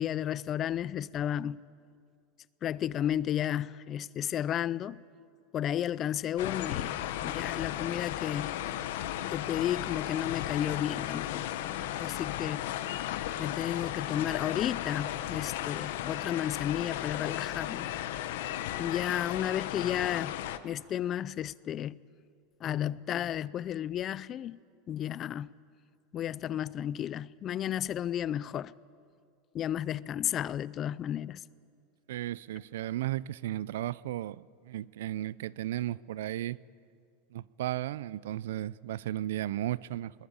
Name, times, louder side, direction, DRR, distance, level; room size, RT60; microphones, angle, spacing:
voice 1, 0.0-1.6 2.6-5.0 5.5-8.6 9.3-12.6 13.4-17.9 18.8-20.3 20.6-22.0 22.6-24.6 24.9-25.5 26.1-28.7 29.5-31.4, left 11 dB, 35° left, 0.5 m, -33 dB
sound 1, 6.4-20.6, left 12 dB, 75° left, 1.1 m, -35 dB
voice 2, 32.1-36.6 37.3-40.1, right 14 dB, 85° right, 0.4 m, -35 dB
21.0 x 19.5 x 8.7 m
supercardioid pair, 125°, 0 cm